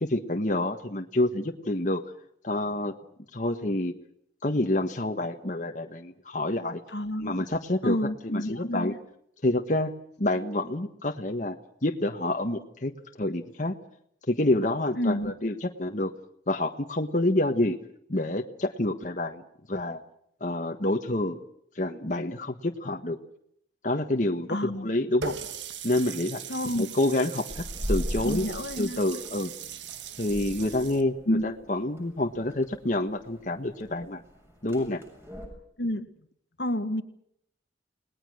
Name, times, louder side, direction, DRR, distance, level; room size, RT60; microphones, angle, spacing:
voice 1, 0.0-2.0 2.4-2.9 3.3-3.9 4.4-6.8 7.2-8.0 8.2-8.9 9.4-9.9 10.2-11.6 11.8-12.9 13.2-13.7 14.3-16.1 16.5-17.8 18.1-19.4 19.7-20.0 20.4-21.4 21.8-23.2 23.8-25.3 25.8-26.4 26.8-28.4 28.8-29.5 30.2-34.2 34.6-35.0, left 1 dB, 45° left, 4 dB, 1.5 m, -28 dB
voice 2, 6.9-7.5 7.8-9.0 14.9-15.3 24.5-24.9 26.5-26.9 28.2-29.0 31.3-31.4 35.8-36.1 36.6-37.0, equal, 65° left, 9 dB, 1.7 m, -29 dB
Water tap faucet, 25.2-31.0, right 7 dB, 85° right, 1.7 m, -39 dB
sound 1, 27.5-35.5, equal, 15° right, 7.1 m, -38 dB
29.5 x 19.5 x 6.4 m, 0.71 s
head